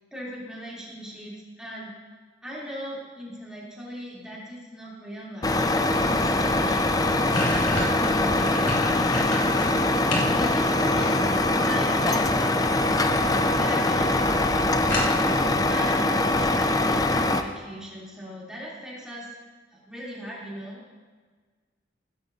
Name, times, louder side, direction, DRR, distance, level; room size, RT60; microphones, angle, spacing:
voice 1, 0.1-1.9 2.4-8.5 8.9-9.3 10.3-19.3 19.7-20.8, equal, 5° right, -7 dB, 3.3 m, -39 dB
Truck, 5.4-17.4, left 2 dB, 20° left, 0.5 m, -23 dB
sound 1, 7.3-10.3 10.7-11.6 12.7-13.1 13.5-13.6 13.9-14.0 14.3-14.4 14.9-15.5, left 1 dB, 90° left, 3.2 m, -30 dB
15.5 x 12.5 x 2.8 m, 1.5 s
head